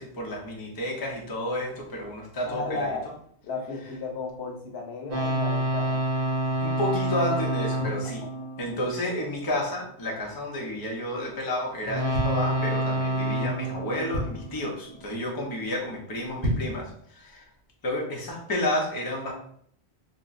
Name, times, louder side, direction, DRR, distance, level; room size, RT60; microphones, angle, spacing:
voice 1, 0.0-2.9 6.6-8.2 8.6-17.4 17.8-19.3, left 1 dB, 25° left, -1 dB, 0.6 m, -31 dB
voice 2, 2.5-3.0 3.4-6.0, left 3 dB, 80° left, 1 dB, 1.0 m, -34 dB
sound 1, 5.1-9.5 11.8-15.1, right 1 dB, 65° right, 0.9 m, -28 dB
sound 2, 12.1-13.1 13.6-13.7 13.9-14.6 15.1-15.3 15.6-15.7 16.2-16.9 17.3-17.4, right 1 dB, 35° right, 0.9 m, -31 dB
4.0 x 2.1 x 2.4 m, 0.64 s
omnidirectional pair, 1.1 m